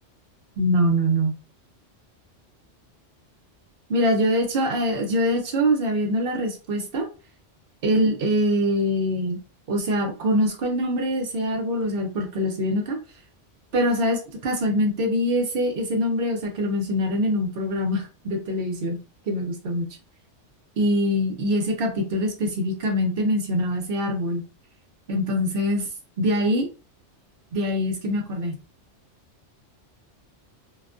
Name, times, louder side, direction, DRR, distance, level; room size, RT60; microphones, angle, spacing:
voice 1, 0.6-1.3 3.9-7.0 7.8-9.4 9.7-13.0 13.7-19.0 19.3-19.9 20.8-24.4 25.1-25.9 26.2-26.7 27.5-28.6, equal, 60° right, 3 dB, 0.7 m, -24 dB
2.3 x 2.1 x 2.5 m, 0.33 s
omnidirectional pair, 1.2 m